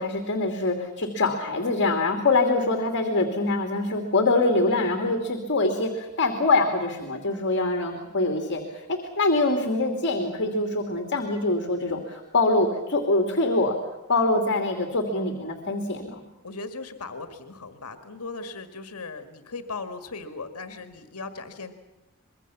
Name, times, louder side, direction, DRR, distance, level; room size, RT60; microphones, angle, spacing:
voice 1, 0.0-13.8 14.1-16.2, left 2 dB, 55° left, 4 dB, 2.8 m, -24 dB
voice 2, 16.4-21.7, left 3 dB, 75° left, 8 dB, 1.9 m, -38 dB
25.0 x 22.5 x 7.2 m, 1.0 s
head